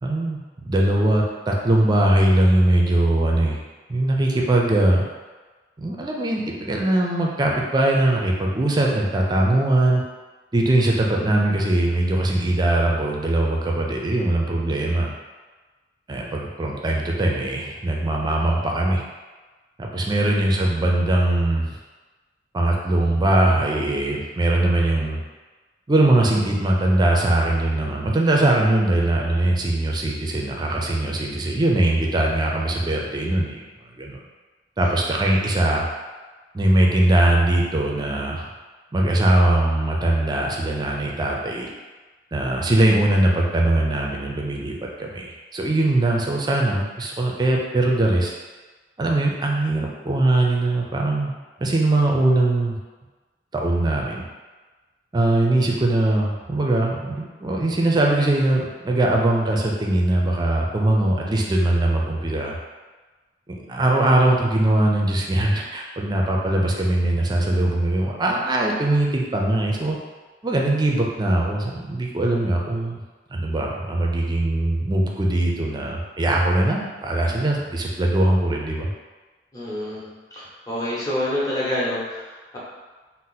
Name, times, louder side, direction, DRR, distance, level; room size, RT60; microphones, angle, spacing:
voice 1, 0.0-3.6 3.9-5.0 5.8-10.0 10.5-15.1 16.1-19.0 19.8-21.8 22.5-25.2 25.9-33.6 34.0-34.2 34.8-35.9 36.5-38.4 38.9-41.7 42.3-48.3 49.0-51.3 51.6-52.8 53.5-54.2 55.1-62.6 63.5-70.0 70.4-73.0 73.3-78.9, right 1 dB, 25° right, -1 dB, 0.4 m, -21 dB
voice 2, 63.9-64.3 79.5-82.6, left 1 dB, 20° left, -7 dB, 0.8 m, -29 dB
2.8 x 2.0 x 3.9 m, 1.3 s
head